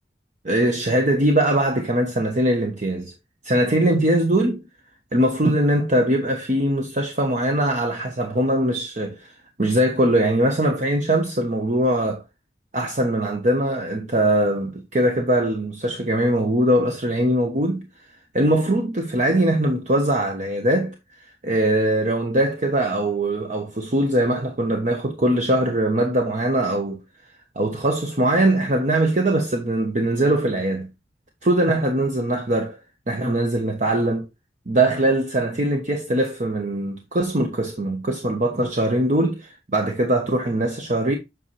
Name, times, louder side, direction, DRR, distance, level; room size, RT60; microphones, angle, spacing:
voice 1, 0.4-3.1 3.4-4.6 5.1-12.2 12.7-17.8 18.3-27.0 27.5-30.9 31.4-32.8 33.1-34.3 34.7-41.2, right 1 dB, 45° right, 1.1 m, -21 dB
8.3 x 5.5 x 3.2 m
head